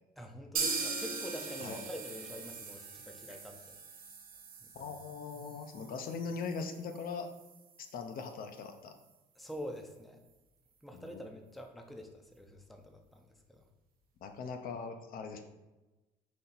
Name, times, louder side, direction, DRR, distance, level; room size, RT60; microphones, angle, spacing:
voice 1, 0.2-3.7 4.6-4.9 9.4-10.2 10.8-13.6, equal, ahead, 4 dB, 0.5 m, -46 dB
sound 1, 0.6-8.3 8.6-8.7 9.0-9.1 9.5-9.6, right 4 dB, 60° right, 0.9 m, -41 dB
voice 2, 4.7-7.3 7.8-8.9 10.9-11.2 14.2-15.4, left 5 dB, 60° left, 6 dB, 0.5 m, -41 dB
4.2 x 2.8 x 3.9 m, 1.1 s
cardioid pair, 110°, 17 cm